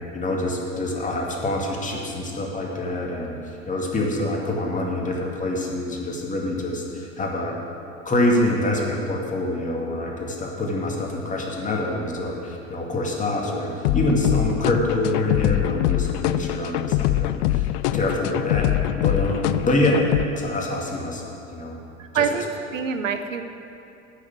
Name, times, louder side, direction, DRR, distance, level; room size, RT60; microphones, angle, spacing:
voice 1, 0.1-7.6 8.0-21.8 22.1-22.2, left 1 dB, 20° left, -1 dB, 2.2 m, -26 dB
sound 1, 13.8-20.2, left 14 dB, 55° left, 0.5 m, -23 dB
voice 2, 22.0-23.4, right 6 dB, 85° right, 8 dB, 0.8 m, -26 dB
9.6 x 7.0 x 8.5 m, 2.7 s
hypercardioid pair, 85°, 38 cm